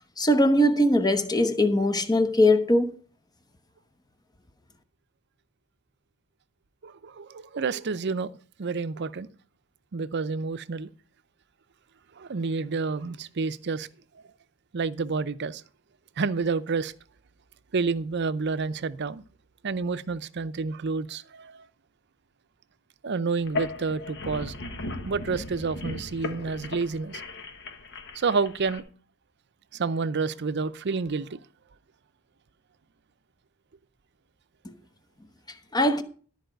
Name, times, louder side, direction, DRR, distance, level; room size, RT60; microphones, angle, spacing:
voice 1, 0.2-2.9 35.7-36.0, left 1 dB, 20° left, 1.0 m, -21 dB
voice 2, 6.8-8.3 8.6-9.3 9.9-10.9 12.2-13.9 14.7-15.6 16.2-16.9 17.7-19.2 19.6-21.7 23.0-24.5 25.0-27.2 28.1-28.8 29.7-31.4, right 4 dB, 55° right, 0.6 m, -29 dB
sound 1, 23.4-28.8, left 2 dB, 60° left, 1.3 m, -37 dB
13.0 x 4.9 x 7.8 m
head